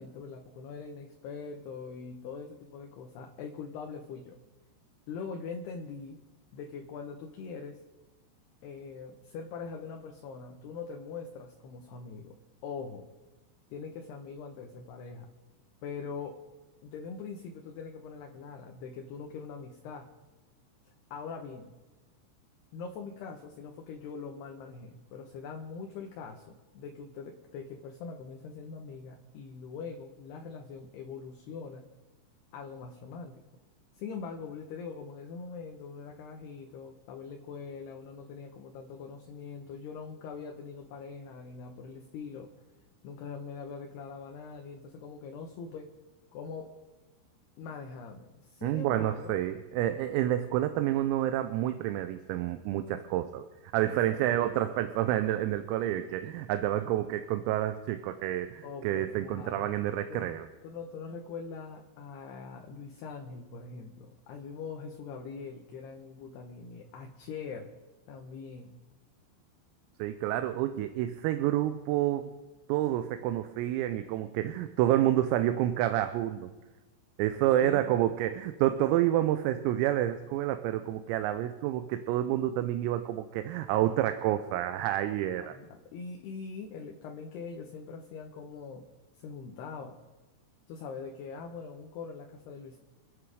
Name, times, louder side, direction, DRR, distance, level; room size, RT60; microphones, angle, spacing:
voice 1, 0.0-4.4 5.1-6.2 6.5-7.8 8.6-12.4 12.6-13.1 13.7-15.3 15.8-16.4 16.8-20.1 21.1-21.7 22.7-31.8 32.5-33.4 34.0-42.5 43.0-45.9 46.3-46.7 47.6-49.4 53.8-54.0 58.6-59.7 60.1-60.3 60.6-67.7 68.1-68.7 77.6-77.9 85.4-88.9 89.1-90.0 90.7-92.8, left 5 dB, 75° left, 2 dB, 2.5 m, -42 dB
voice 2, 48.6-53.4 53.7-60.5 70.0-72.3 72.7-76.5 77.2-85.6, right 13 dB, 90° right, 8 dB, 3.5 m, -29 dB
27.0 x 9.5 x 4.8 m, 1.2 s
omnidirectional pair, 6.0 m